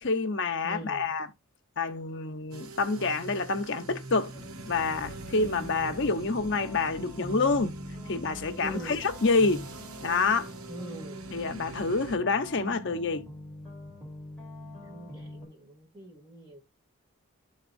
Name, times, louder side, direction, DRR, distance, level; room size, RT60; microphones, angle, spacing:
voice 1, 0.0-1.3 1.8-4.3 4.7-7.8 8.1-9.7 10.0-10.5 11.3-13.3, left 3 dB, 55° left, 0.8 m, -27 dB
voice 2, 0.6-1.1 8.6-9.0 10.7-11.3 14.8-16.6, right 1 dB, 20° right, 2.3 m, -42 dB
sound 1, 2.5-12.2, right 2 dB, 85° right, 0.7 m, -45 dB
sound 2, 4.3-15.5, equal, 5° right, 3.5 m, -44 dB
12.0 x 4.0 x 2.5 m
head